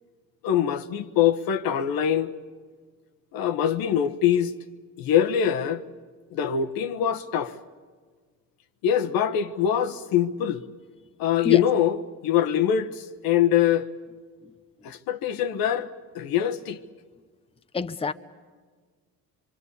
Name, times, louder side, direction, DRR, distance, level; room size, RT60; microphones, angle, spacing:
voice 1, 0.4-2.3 3.3-4.5 5.0-5.8 6.3-7.6 8.8-10.6 11.2-13.9 14.8-15.9 16.1-16.8, left 9 dB, 80° left, 1.4 m, -23 dB
voice 2, 17.7-18.1, left 4 dB, 15° left, 0.8 m, -27 dB
26.5 x 24.0 x 8.4 m
cardioid pair, 110°, 35 cm